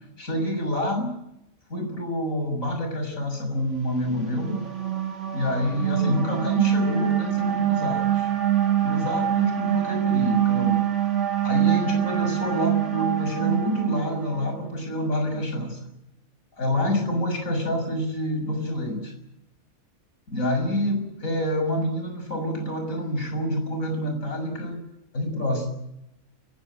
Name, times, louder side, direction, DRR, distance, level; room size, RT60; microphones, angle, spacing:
voice 1, 0.2-1.1 1.7-4.6 5.3-8.3 8.8-10.8 11.4-15.9 16.6-19.1 20.3-24.8 25.1-25.7, left 1 dB, 70° left, 4 dB, 7.2 m, -27 dB
sound 1, 4.0-14.5, right 10 dB, 55° right, 2.7 m, -25 dB
29.0 x 16.5 x 8.9 m, 0.85 s
omnidirectional pair, 1.5 m